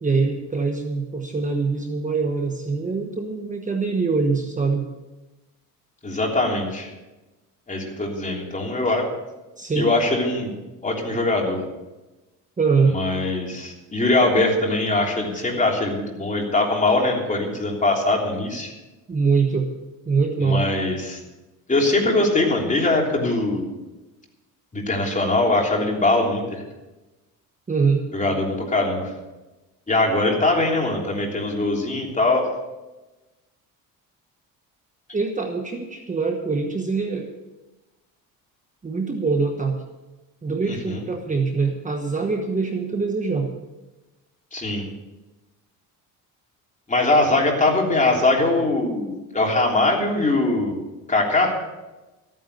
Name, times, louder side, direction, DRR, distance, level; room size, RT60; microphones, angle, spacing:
voice 1, 0.0-4.9 9.6-9.9 12.6-13.0 19.1-19.7 20.1-20.6 27.7-28.1 35.1-37.3 38.8-39.8 40.4-43.5, right 4 dB, 20° right, 3 dB, 1.2 m, -23 dB
voice 2, 6.0-6.9 7.7-9.1 9.8-10.5 10.8-11.6 12.9-18.7 20.4-21.2 21.7-23.7 24.7-26.6 28.1-29.1 29.9-32.4 40.7-41.0 44.5-44.8 46.9-50.7 51.1-51.6, left 2 dB, 20° left, 0 dB, 3.2 m, -22 dB
14.0 x 9.3 x 6.7 m, 1.1 s
cardioid pair, 115°, 36 cm